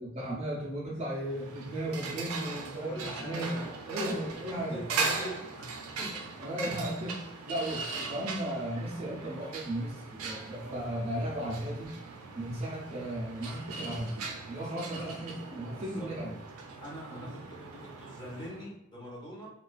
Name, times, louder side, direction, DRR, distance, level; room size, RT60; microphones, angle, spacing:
voice 1, 0.0-3.6 3.8-5.1 6.4-12.0 12.3-16.4 17.1-17.4, right 1 dB, 30° right, -5 dB, 0.5 m, -36 dB
sound 1, 1.2-18.7, right 4 dB, 90° right, 0.4 m, -39 dB
voice 2, 2.8-3.7 4.5-6.1 14.5-15.2 15.7-16.1 16.8-19.5, equal, 20° left, -5 dB, 0.8 m, -43 dB
2.3 x 2.3 x 2.3 m, 0.85 s
head